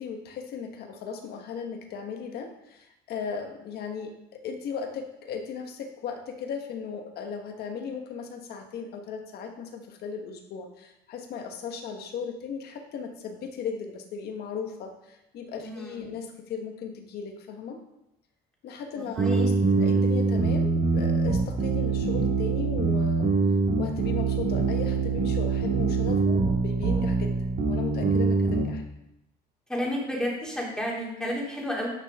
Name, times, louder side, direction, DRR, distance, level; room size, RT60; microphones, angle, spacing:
voice 1, 0.0-17.8 18.6-19.5 19.8-23.3 23.8-27.3 27.6-28.8, left 6 dB, 70° left, 4 dB, 1.4 m, -37 dB
voice 2, 15.6-16.2 19.0-20.0 29.7-31.9, equal, 5° left, -4 dB, 2.9 m, -32 dB
sound 1, 19.2-28.7, right 4 dB, 60° right, 2.0 m, -24 dB
10.0 x 6.4 x 3.7 m, 0.87 s
cardioid pair, 110°, 17 cm